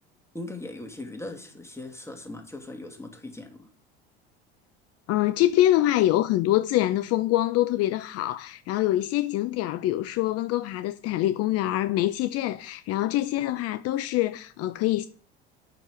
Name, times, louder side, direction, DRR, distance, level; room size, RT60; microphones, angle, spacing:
voice 1, 0.3-3.7, left 2 dB, 10° left, 2.4 m, -39 dB
voice 2, 5.1-15.1, left 14 dB, 55° left, 0.6 m, -25 dB
8.7 x 6.8 x 5.0 m
hypercardioid pair, 80°, 29 cm